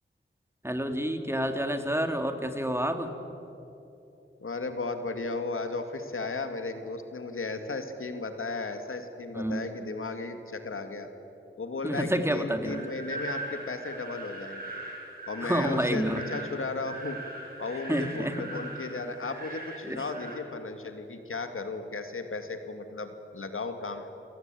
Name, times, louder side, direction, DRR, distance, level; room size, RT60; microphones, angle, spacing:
voice 1, 0.6-3.1 9.4-9.7 11.8-12.9 15.4-16.2 17.9-18.4 19.8-20.0, equal, 10° right, 6 dB, 2.5 m, -29 dB
voice 2, 4.4-11.1 11.6-14.7 15.3-17.2 17.6-24.1, left 3 dB, 80° left, 7 dB, 2.2 m, -35 dB
sound 1, 12.6-20.4, right 2 dB, 45° right, 7.3 m, -41 dB
28.5 x 17.5 x 9.2 m, 2.9 s
wide cardioid pair, 65°, 21 cm